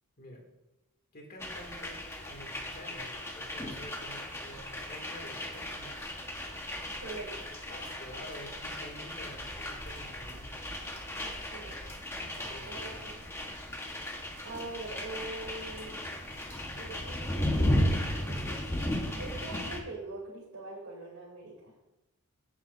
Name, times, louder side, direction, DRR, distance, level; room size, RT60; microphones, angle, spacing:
voice 1, 1.1-2.0 2.3-6.2 7.7-10.6 12.4-12.8, equal, 40° left, 1 dB, 2.5 m, -48 dB
sound 1, 1.4-19.8, left 1 dB, 10° left, 1.4 m, -35 dB
voice 2, 7.0-7.4 11.2-11.8 12.6-13.3 14.4-16.0 16.7-21.7, right 2 dB, 70° right, -7 dB, 3.3 m, -44 dB
16.5 x 7.4 x 2.8 m, 0.98 s
head